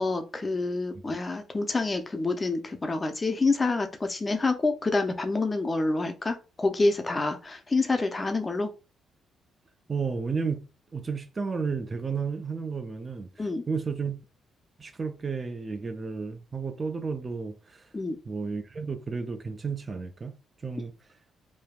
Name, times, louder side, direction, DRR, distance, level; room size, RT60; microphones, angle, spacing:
voice 1, 0.0-8.7 13.4-13.6 17.9-18.2, left 3 dB, 25° left, 0.5 m, -27 dB
voice 2, 9.9-13.3 13.7-14.2 14.8-17.9 18.3-20.3 20.6-20.9, right 5 dB, 35° right, 0.4 m, -32 dB
3.3 x 2.2 x 2.3 m
cardioid pair, 90°, 0 cm